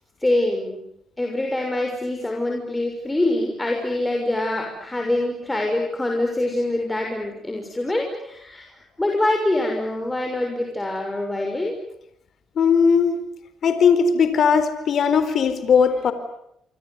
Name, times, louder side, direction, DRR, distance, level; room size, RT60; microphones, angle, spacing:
voice 1, 0.2-0.8 1.2-11.8, left 1 dB, 15° left, 2 dB, 6.3 m, -25 dB
voice 2, 12.6-13.2 13.6-16.1, left 6 dB, 60° left, 11 dB, 4.1 m, -18 dB
27.5 x 25.5 x 8.2 m, 0.75 s
cardioid pair, 90°, 0 cm